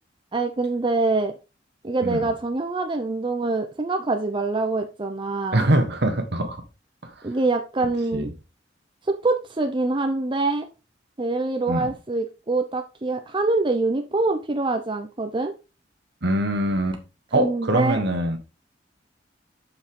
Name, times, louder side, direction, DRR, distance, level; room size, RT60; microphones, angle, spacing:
voice 1, 0.3-1.3 1.8-5.7 7.2-8.3 9.1-10.7 11.2-15.5 17.3-18.0, right 3 dB, 25° right, 0.6 m, -25 dB
voice 2, 5.5-6.6 7.0-7.1 8.1-8.3 11.7-11.9 16.2-17.0 17.3-18.4, right 1 dB, 60° right, 1.6 m, -23 dB
7.3 x 5.7 x 3.7 m
head